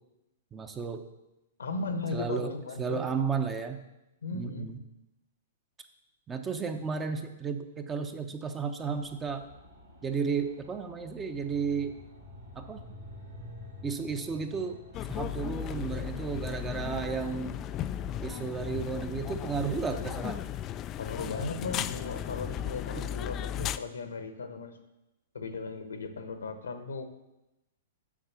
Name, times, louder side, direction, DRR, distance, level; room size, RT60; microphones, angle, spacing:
voice 1, 0.5-1.0 2.1-2.5 2.8-3.8 4.3-4.8 6.3-9.4 10.0-12.0 12.6-12.9 13.8-14.8 15.1-17.6 18.2-20.5 21.2-21.3 22.9-23.0, right 5 dB, 20° right, 7 dB, 0.8 m, -33 dB
voice 2, 1.6-3.0 4.2-4.7 6.7-6.8 21.0-24.7 25.3-27.0, left 3 dB, 75° left, 9 dB, 1.1 m, -36 dB
sound 1, 8.8-17.9, left 1 dB, 85° right, 2.7 m, -50 dB
sound 2, 14.9-23.8, left 10 dB, 30° left, 0.3 m, -36 dB
7.4 x 5.7 x 6.9 m, 0.94 s
figure-of-eight pair, 110°, 0 cm